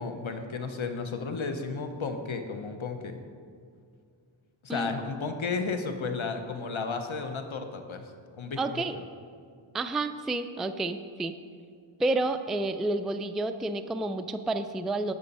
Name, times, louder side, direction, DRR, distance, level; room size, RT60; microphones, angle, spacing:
voice 1, 0.0-3.2 4.6-8.1 8.4-9.0, left 4 dB, 85° left, 6 dB, 0.9 m, -33 dB
voice 2, 8.6-9.0 9.7-11.3 12.0-15.1, right 2 dB, ahead, 8 dB, 0.3 m, -30 dB
9.7 x 6.2 x 5.4 m, 2.2 s
wide cardioid pair, 55°, 46 cm